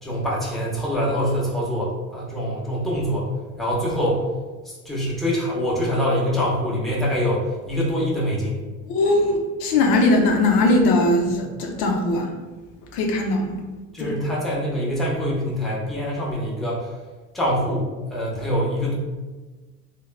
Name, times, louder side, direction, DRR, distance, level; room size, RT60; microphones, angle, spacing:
voice 1, 0.0-3.3 3.6-4.2 4.6-8.6 13.9-16.9 17.3-19.0, equal, ahead, -6 dB, 0.7 m, -24 dB
voice 2, 8.9-12.3 12.9-13.5 14.0-14.1, left 2 dB, 75° left, 1 dB, 0.5 m, -20 dB
2.9 x 2.1 x 2.2 m, 1.3 s
supercardioid pair, 85°, 38 cm